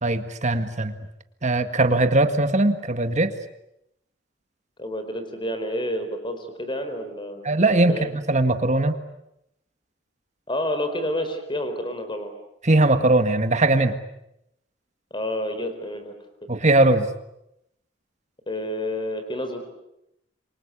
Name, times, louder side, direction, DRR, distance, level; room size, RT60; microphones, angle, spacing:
voice 1, 0.0-0.9 1.4-3.3 7.4-9.0 12.6-14.0 16.5-17.1, right 2 dB, 40° right, 9 dB, 1.7 m, -20 dB
voice 2, 4.8-7.4 7.7-8.1 10.5-12.3 15.1-16.1 18.5-19.7, left 1 dB, 25° left, 8 dB, 4.4 m, -29 dB
27.5 x 24.5 x 8.4 m, 0.82 s
head